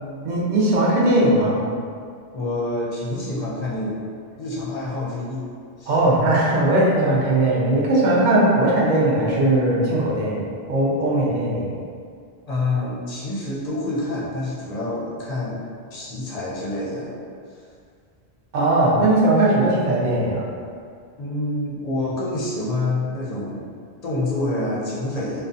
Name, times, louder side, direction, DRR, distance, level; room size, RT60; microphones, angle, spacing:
voice 1, 0.2-1.6 5.9-11.8 18.5-20.5, right 1 dB, 55° right, -5 dB, 0.6 m, -19 dB
voice 2, 2.3-4.0 4.4-5.5 5.8-5.9 12.5-15.6 15.9-17.2 21.2-23.7 24.0-25.4, left 2 dB, 50° left, -7 dB, 0.5 m, -27 dB
2.6 x 2.1 x 2.5 m, 2.2 s
omnidirectional pair, 1.1 m